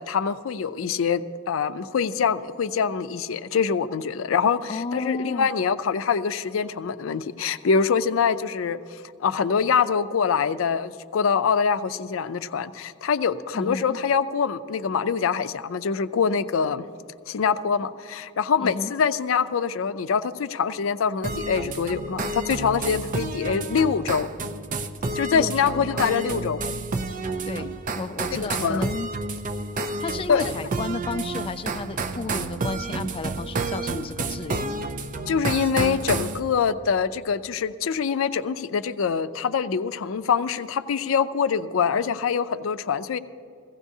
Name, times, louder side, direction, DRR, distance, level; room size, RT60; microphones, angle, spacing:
voice 1, 0.0-16.9 17.3-24.3 25.1-26.6 28.3-28.9 30.3-30.5 35.3-43.2, left 6 dB, 90° left, 12 dB, 0.4 m, -24 dB
voice 2, 4.7-5.5 13.5-14.0 18.6-18.9 25.3-25.9 27.4-29.1 30.0-34.9, left 3 dB, 25° left, 11 dB, 0.3 m, -32 dB
sound 1, 21.2-36.4, right 3 dB, 40° right, 0.5 m, -30 dB
16.5 x 15.5 x 2.7 m, 2.4 s
head